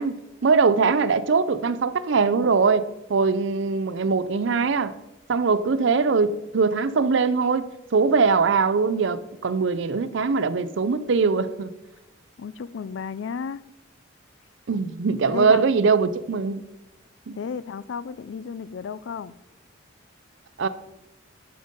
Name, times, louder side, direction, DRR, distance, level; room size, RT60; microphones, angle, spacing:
voice 1, 0.0-4.9 5.3-11.7 14.7-16.6 17.3-17.4 20.6-20.7, right 4 dB, 60° right, 0.5 m, -22 dB
voice 2, 12.4-13.6 15.3-15.6 17.3-19.3, left 6 dB, 65° left, 0.3 m, -33 dB
11.0 x 5.2 x 5.3 m
head